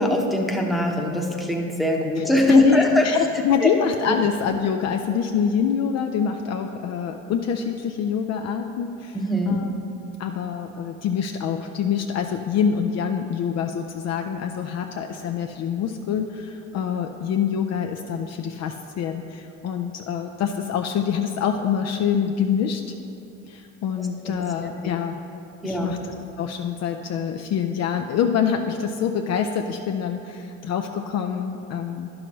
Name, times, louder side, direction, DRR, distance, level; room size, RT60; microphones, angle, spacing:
voice 1, 0.0-3.1 3.6-3.7 4.1-4.2 9.1-9.6 24.2-24.4 24.8-24.9 25.6-25.9, equal, ahead, 0 dB, 1.0 m, -21 dB
voice 2, 2.5-9.2 9.5-9.7 10.2-22.8 23.5-25.2 25.6-26.0 26.4-32.1, left 7 dB, 45° left, 5 dB, 0.5 m, -25 dB
10.5 x 6.1 x 3.1 m, 2.7 s
hypercardioid pair, 70°, 37 cm